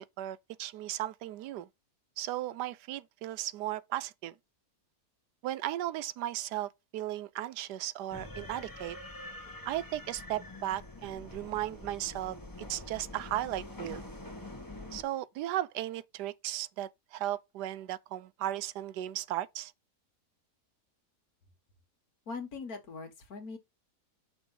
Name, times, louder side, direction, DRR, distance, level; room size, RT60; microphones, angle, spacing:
voice 1, 0.0-1.7 2.2-4.3 5.4-9.0 9.7-12.4 12.7-14.0 14.9-19.7, right 13 dB, 85° right, 1.2 m, -36 dB
sound 1, 8.1-15.0, left 2 dB, 15° left, 1.3 m, -45 dB
voice 2, 22.3-23.6, left 4 dB, 65° left, 2.0 m, -41 dB
6.2 x 3.4 x 5.5 m
omnidirectional pair, 1.7 m